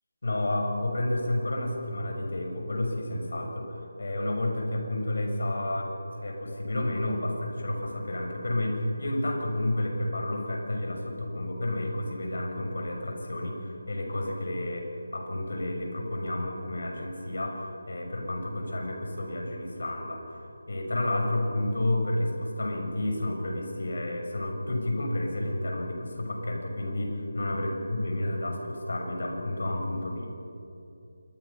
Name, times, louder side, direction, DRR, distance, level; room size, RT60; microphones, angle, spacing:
voice 1, 0.2-5.9 6.2-14.8 15.1-20.4 20.7-30.3, left 1 dB, 70° left, 2 dB, 6.5 m, -30 dB
27.0 x 22.5 x 5.8 m, 2.8 s
figure-of-eight pair, 165°, 0 cm